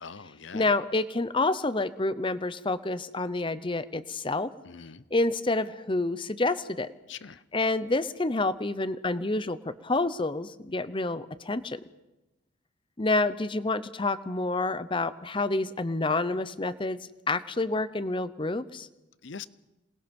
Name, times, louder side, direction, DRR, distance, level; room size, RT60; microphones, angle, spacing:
voice 1, 0.0-0.7 4.6-5.0 7.1-7.4 19.2-19.5, left 6 dB, 65° left, 17 dB, 0.7 m, -42 dB
voice 2, 0.5-4.5 5.1-6.9 7.5-11.8 13.0-17.0 17.3-18.9, left 2 dB, 25° left, 15 dB, 0.7 m, -28 dB
27.5 x 20.0 x 5.4 m, 1.0 s
head